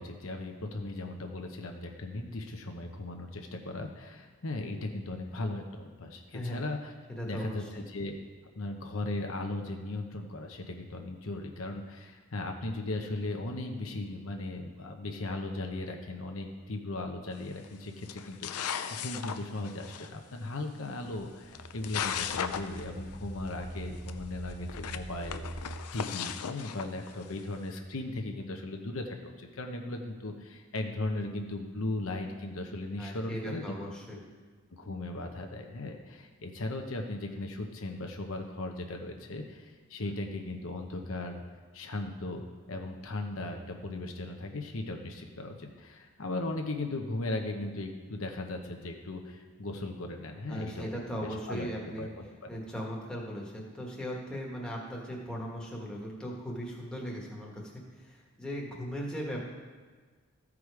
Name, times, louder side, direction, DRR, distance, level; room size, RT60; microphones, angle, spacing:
voice 1, 0.0-6.9 7.2-8.2 8.5-33.7 34.7-41.4 41.7-50.9 51.2-51.7 52.0-52.6, left 2 dB, 70° left, 3 dB, 0.9 m, -37 dB
voice 2, 7.2-7.7 33.0-34.2 50.5-52.1 52.5-59.4, equal, 5° left, -4 dB, 1.4 m, -38 dB
sound 1, 17.4-17.6 18.0-20.1 21.1-21.2 21.5-22.9 23.1-23.2 23.5-23.6 24.1-24.2 24.6-27.4, left 8 dB, 90° left, 0.5 m, -36 dB
sound 2, 21.6-25.8, right 1 dB, 80° right, 2.7 m, -43 dB
14.0 x 4.9 x 4.8 m, 1.5 s
head